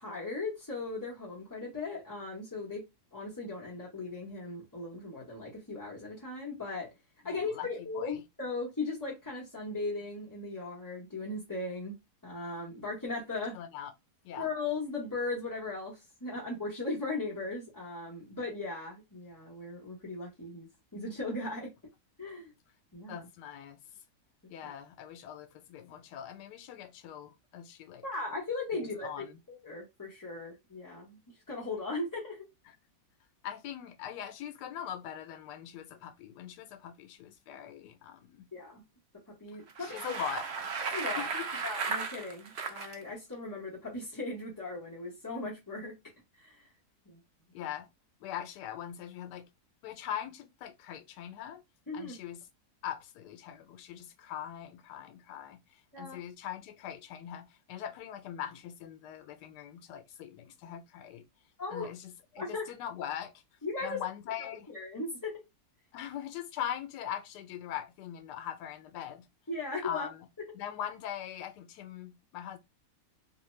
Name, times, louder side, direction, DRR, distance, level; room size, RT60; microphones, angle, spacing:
voice 1, 0.0-2.8 3.1-6.9 7.2-12.0 12.2-13.6 14.4-20.7 20.9-21.7 22.2-22.5 22.9-23.3 28.0-31.2 31.5-32.5 38.5-38.8 39.3-40.0 40.9-41.3 41.6-45.9 46.4-46.6 47.1-47.2 51.9-52.2 55.9-56.2 61.6-61.9 62.4-62.7 63.6-64.0 64.7-65.4 69.5-70.1, left 3 dB, 15° left, 0.6 m, -38 dB
voice 2, 7.2-8.2 13.5-13.9 14.2-14.5 23.1-23.8 24.5-28.0 28.7-29.4 33.4-38.5 39.8-40.7 41.2-41.6 47.5-47.9 48.2-49.5 49.8-51.6 51.9-52.4 52.8-61.2 61.7-63.4 63.8-64.7 65.9-69.3 69.8-70.2 70.5-72.6, left 10 dB, 85° left, 1.2 m, -41 dB
Bicycle, 39.7-42.9, right 5 dB, 70° right, 0.6 m, -35 dB
2.9 x 2.2 x 3.1 m
omnidirectional pair, 1.8 m